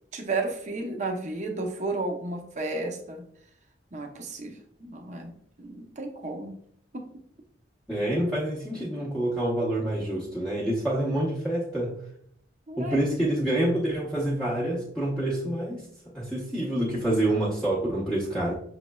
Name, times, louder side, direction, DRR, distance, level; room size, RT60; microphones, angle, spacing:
voice 1, 0.1-3.2 3.9-6.6 6.9-7.1 12.7-13.0, right 2 dB, 40° right, 3 dB, 0.6 m, -33 dB
voice 2, 7.9-11.9 12.8-15.8 16.1-18.5, right 1 dB, 5° left, -7 dB, 0.7 m, -27 dB
6.1 x 3.0 x 2.2 m, 0.66 s
head